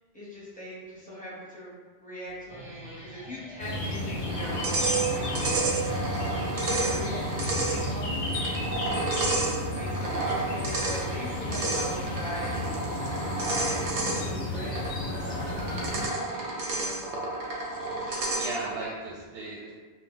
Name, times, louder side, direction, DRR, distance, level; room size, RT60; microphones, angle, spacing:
voice 1, 0.1-1.7 2.0-5.7 6.7-7.3 7.5-8.4 9.7-12.9 13.7-17.0, equal, 10° left, -9 dB, 0.6 m, -41 dB
Guitar, 2.3-8.9, right 1 dB, 30° right, 0.7 m, -46 dB
sound 1, 3.6-16.1, left 1 dB, 60° left, 0.6 m, -33 dB
sound 2, 4.3-18.8, right 3 dB, 90° right, 0.9 m, -31 dB
voice 2, 18.0-19.7, right 2 dB, 65° right, -5 dB, 0.7 m, -37 dB
2.1 x 2.0 x 3.8 m, 1.4 s
omnidirectional pair, 1.2 m